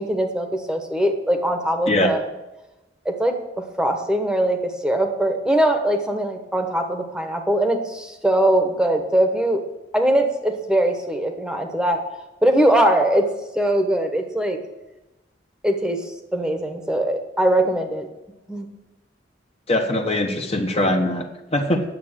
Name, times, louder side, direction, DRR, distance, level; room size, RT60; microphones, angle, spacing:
voice 1, 0.0-2.3 3.0-3.4 3.8-9.6 9.9-12.0 12.4-13.3 13.5-14.6 15.6-18.1 18.5-18.7, right 1 dB, 5° right, 4 dB, 1.1 m, -21 dB
voice 2, 19.7-21.8, left 1 dB, 35° left, 3 dB, 1.2 m, -22 dB
9.6 x 7.4 x 8.9 m, 1.0 s
head